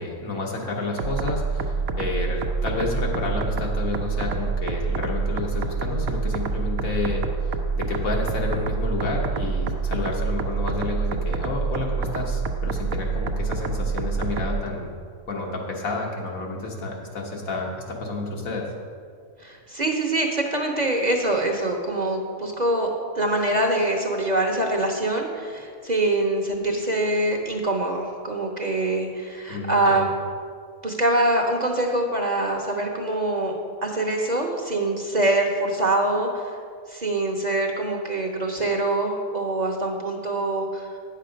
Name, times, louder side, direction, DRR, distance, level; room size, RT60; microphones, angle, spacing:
voice 1, 0.0-7.2 7.7-15.0 15.3-18.7 29.5-30.1, left 2 dB, 85° left, -1 dB, 1.7 m, -30 dB
sound 1, 1.0-14.6, right 4 dB, 85° right, 1.1 m, -27 dB
voice 2, 19.4-30.1 30.8-36.5 36.9-40.9, right 1 dB, 40° right, 1 dB, 0.8 m, -24 dB
9.3 x 6.7 x 5.1 m, 2.1 s
omnidirectional pair, 1.4 m